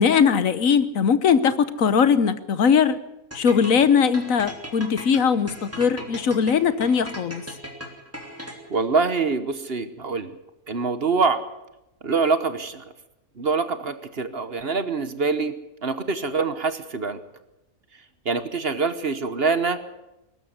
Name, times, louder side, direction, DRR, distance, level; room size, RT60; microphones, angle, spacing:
voice 1, 0.0-3.0 3.3-7.5, left 6 dB, 70° left, 14 dB, 1.3 m, -20 dB
sound 1, 3.3-8.8, equal, 10° right, 3.1 m, -38 dB
voice 2, 8.7-10.3 10.7-11.4 12.0-12.8 13.4-15.5 15.8-17.2 18.2-19.8, right 4 dB, 45° right, 12 dB, 1.3 m, -24 dB
21.0 x 12.5 x 9.6 m, 0.93 s
omnidirectional pair, 1.5 m